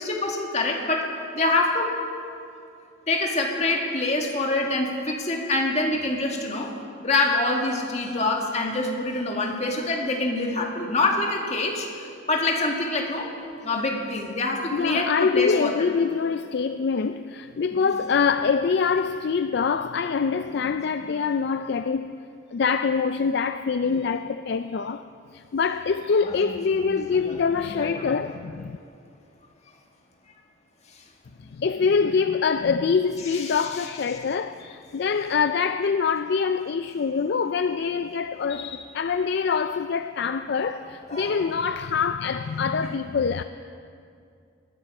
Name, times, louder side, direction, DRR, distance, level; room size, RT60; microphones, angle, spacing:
voice 1, 0.0-1.9 3.1-6.7 7.0-13.3 13.6-15.7 17.7-17.9 21.2-21.3 23.9-24.0 26.2-26.5 26.8-27.0 27.5-28.1 33.3-33.9 41.1-41.3 42.8-42.9, left 2 dB, 30° left, 1.8 m, -26 dB
voice 2, 14.7-22.2 22.5-25.0 25.3-28.8 31.4-43.4, left 5 dB, 55° left, 0.4 m, -25 dB
19.5 x 13.5 x 5.4 m
head